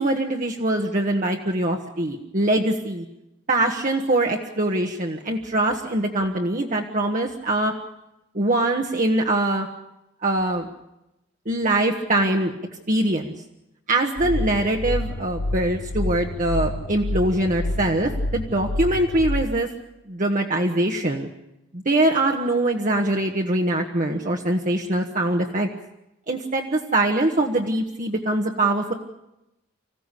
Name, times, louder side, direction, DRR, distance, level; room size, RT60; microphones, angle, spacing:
voice 1, 0.0-3.0 3.5-7.7 8.3-9.7 10.2-10.7 11.4-12.5 12.9-13.3 13.9-19.7 20.1-21.3 21.7-25.7 26.3-28.9, right 1 dB, 40° right, 1 dB, 1.5 m, -23 dB
sound 1, 14.2-19.5, left 1 dB, 55° left, 1.0 m, -28 dB
25.5 x 15.5 x 8.4 m, 0.88 s
head